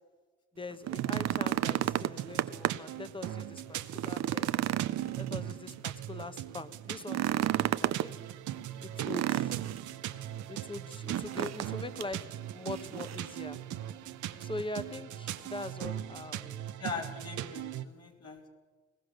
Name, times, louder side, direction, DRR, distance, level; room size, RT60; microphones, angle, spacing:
voice 1, 0.5-4.6 5.2-8.1 8.8-9.6 10.5-12.3 12.5-13.6 14.4-16.7, left 2 dB, 15° left, 11 dB, 1.1 m, -42 dB
sound 1, 0.7-3.0 3.4-3.5 3.9-5.8 7.0-8.1 9.0-9.9 11.1-11.7 12.0-12.1 12.7-13.3 14.4-14.5, right 12 dB, 60° right, 0.6 m, -32 dB
sound 2, 0.9-17.8, right 12 dB, 80° right, 0.9 m, -40 dB
voice 2, 16.8-18.5, left 4 dB, 55° left, -1 dB, 3.5 m, -40 dB
21.5 x 18.5 x 6.7 m, 1.4 s
cardioid pair, 90°, 30 cm